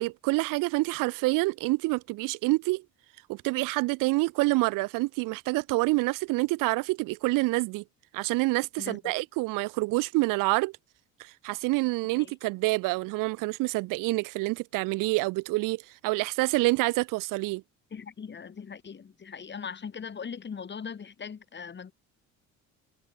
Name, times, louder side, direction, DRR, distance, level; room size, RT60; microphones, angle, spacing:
voice 1, 0.0-2.8 3.3-7.8 8.1-10.7 11.2-17.6, right 23 dB, 90° right, 0.7 m, -27 dB
voice 2, 8.8-9.1 12.2-12.3 17.9-21.9, left 6 dB, 35° left, 8.0 m, -40 dB
cardioid pair, 115°, 31 cm